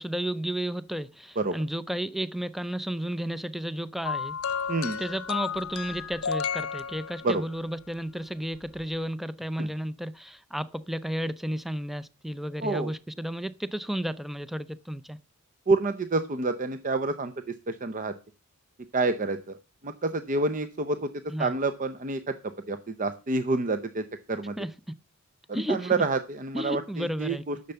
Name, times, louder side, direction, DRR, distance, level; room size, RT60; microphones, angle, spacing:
voice 1, 0.0-4.4 5.0-15.2 21.3-21.6 24.6-24.7 25.5-26.1 26.5-27.4, equal, ahead, 0.4 m, -32 dB
sound 1, 4.0-7.6 8.7-8.8, left 6 dB, 75° left, 0.7 m, -32 dB
voice 2, 4.7-5.0 7.2-7.4 9.6-9.7 12.6-12.9 15.7-17.3 17.7-18.1 18.9-19.5 19.8-21.1 21.4-22.3 22.7-24.5 25.5-27.6, right 3 dB, 40° right, 0.7 m, -28 dB
10.5 x 6.6 x 6.8 m
head